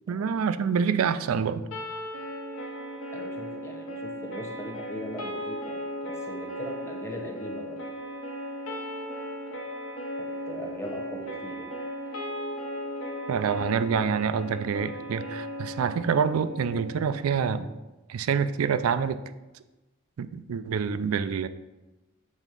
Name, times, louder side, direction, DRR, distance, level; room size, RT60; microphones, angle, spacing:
voice 1, 0.1-1.6 13.3-17.7 18.1-19.2 20.2-21.5, right 6 dB, 90° right, 13 dB, 0.4 m, -26 dB
sound 1, 1.7-17.7, equal, 80° left, 1.1 m, -37 dB
voice 2, 3.1-7.8 10.2-11.8, equal, 15° left, 1 dB, 0.9 m, -40 dB
6.4 x 3.5 x 5.2 m, 1.1 s
head